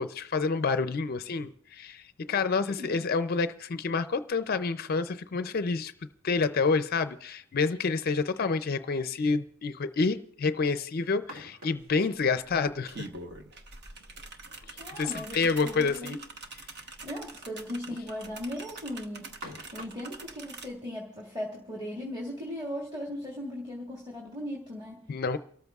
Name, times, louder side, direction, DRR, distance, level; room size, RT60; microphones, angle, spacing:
voice 1, 0.0-5.9 6.2-13.1 15.0-16.2 25.1-25.4, left 4 dB, 45° left, 11 dB, 0.4 m, -28 dB
voice 2, 2.3-3.0 14.8-16.2 17.0-19.3 19.7-25.0, left 1 dB, 20° right, -4 dB, 1.9 m, -38 dB
sound 1, 11.0-12.1 14.2-15.5 15.8-15.9 16.2-16.3 17.1-17.2 18.4-20.1, equal, 80° right, 2.1 m, -47 dB
sound 2, 11.8-11.9 12.2-20.7, right 3 dB, 50° right, 1.1 m, -45 dB
29.5 x 13.5 x 2.4 m, 0.66 s
head